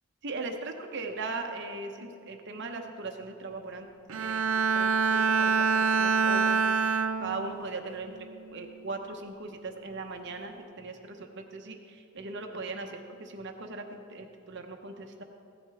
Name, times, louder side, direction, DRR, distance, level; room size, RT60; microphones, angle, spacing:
voice 1, 0.2-3.9 4.1-4.5 4.7-8.1 8.5-15.2, right 3 dB, 55° right, 4 dB, 0.9 m, -39 dB
Bowed string instrument, 4.1-7.7 8.1-8.5, right 5 dB, 85° right, 0.7 m, -26 dB
15.5 x 11.0 x 3.5 m, 2.6 s
head